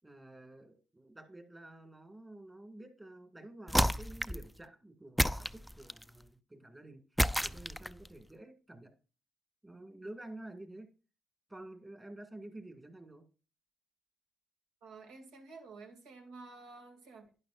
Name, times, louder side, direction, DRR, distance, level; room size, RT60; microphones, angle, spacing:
voice 1, 0.0-8.9 9.6-10.9 11.5-13.3, right 1 dB, 15° right, 6 dB, 2.0 m, -50 dB
sound 1, 3.7-4.5 5.2-6.1 7.2-8.1, equal, ahead, 0.3 m, -30 dB
voice 2, 14.8-17.3, right 3 dB, 85° right, 3 dB, 2.5 m, -51 dB
12.0 x 9.9 x 2.5 m, 0.34 s
cardioid pair, 115°, 0 cm